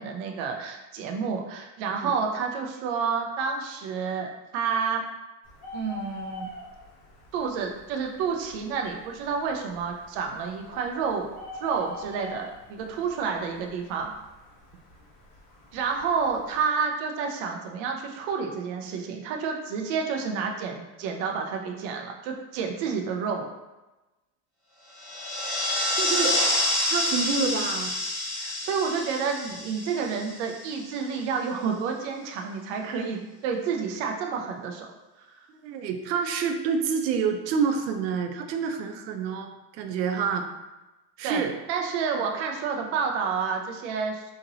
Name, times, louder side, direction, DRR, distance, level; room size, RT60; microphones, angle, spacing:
voice 1, 0.0-5.0 5.7-6.5 7.3-11.3 11.6-14.1 15.7-23.5 28.3-34.9 35.2-35.4 41.2-44.2, right 5 dB, 40° right, 2 dB, 0.4 m, -29 dB
Bird, 5.4-16.6, left 2 dB, 35° left, 1.0 m, -45 dB
sound 1, 24.9-30.8, left 1 dB, ahead, 1.0 m, -28 dB
voice 2, 26.0-26.4 26.9-27.9 35.6-40.5 41.2-41.5 42.1-42.2, right 6 dB, 90° right, 6 dB, 0.6 m, -28 dB
2.9 x 2.6 x 2.7 m, 1.1 s
supercardioid pair, 140°, 50 cm